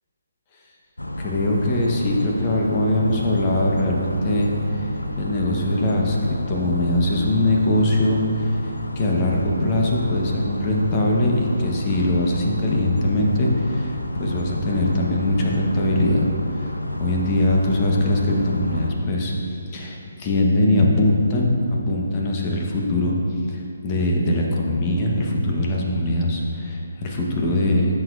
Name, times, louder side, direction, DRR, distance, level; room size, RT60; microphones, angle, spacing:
sound 1, 1.0-18.9, left 1 dB, 85° left, 0.7 m, -30 dB
voice 1, 1.2-4.9 5.2-6.2 6.5-19.3 19.7-21.6 21.9-28.0, left 1 dB, 30° left, -1 dB, 1.3 m, -22 dB
15.0 x 6.5 x 2.7 m, 2.5 s
figure-of-eight pair, 140°, 0 cm